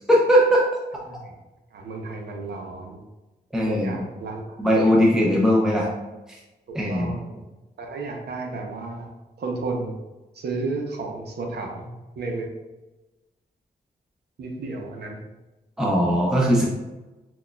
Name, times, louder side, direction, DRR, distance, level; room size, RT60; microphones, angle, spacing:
voice 1, 0.1-0.6 3.5-4.0 4.6-5.9 6.7-7.1 15.8-16.6, equal, 5° right, -3 dB, 0.5 m, -19 dB
voice 2, 1.7-3.0 3.7-4.4 6.9-7.4 7.8-9.1 9.4-9.9 10.4-11.9 12.2-12.5 14.4-15.2, right 3 dB, 80° right, 1 dB, 0.7 m, -32 dB
6.0 x 2.3 x 2.2 m, 1.1 s
cardioid pair, 85°, 17 cm